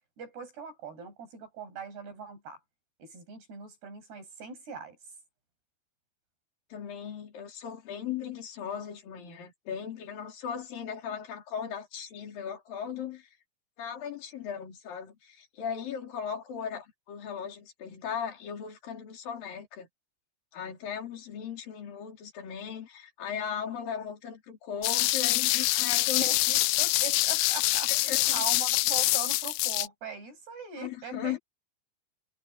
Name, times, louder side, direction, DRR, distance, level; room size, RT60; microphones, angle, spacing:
voice 1, 0.2-2.6 3.0-5.0 26.2-31.4, right 5 dB, 65° right, 10.0 m, -41 dB
voice 2, 6.7-13.3 13.8-19.9 20.5-26.2 27.9-28.5 30.8-31.4, left 8 dB, 55° left, 5.3 m, -37 dB
sound 1, 24.8-29.9, left 18 dB, 90° left, 2.1 m, -25 dB
omnidirectional pair, 5.0 m